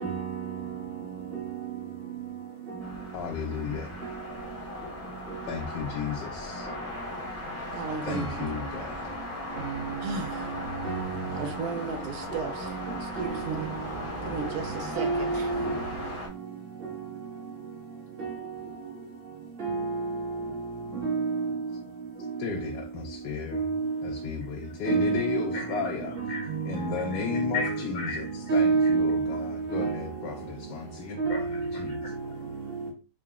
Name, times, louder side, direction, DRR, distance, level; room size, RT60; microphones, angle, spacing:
voice 1, 0.0-0.4 10.9-11.3 13.2-13.6 14.4-14.5 15.0-15.7 18.2-18.4 19.6-20.1 21.0-21.2 24.9-25.4 27.6-27.7 28.5-29.2 29.7-30.0 31.2-31.4, right 4 dB, 35° right, 1.1 m, -27 dB
sound 1, 2.8-16.3, left 2 dB, 15° left, 0.6 m, -38 dB
voice 2, 3.1-3.9 5.4-6.7 8.0-9.0 22.4-26.2 26.6-32.0, left 6 dB, 85° left, 1.2 m, -34 dB
voice 3, 7.7-8.5 10.0-10.6 11.3-13.7 14.2-15.5, right 5 dB, 70° right, 1.0 m, -36 dB
voice 4, 25.5-25.9 26.3-26.5 27.5-28.5 31.3-32.9, left 4 dB, 65° left, 1.0 m, -37 dB
3.8 x 2.1 x 3.5 m
omnidirectional pair, 1.8 m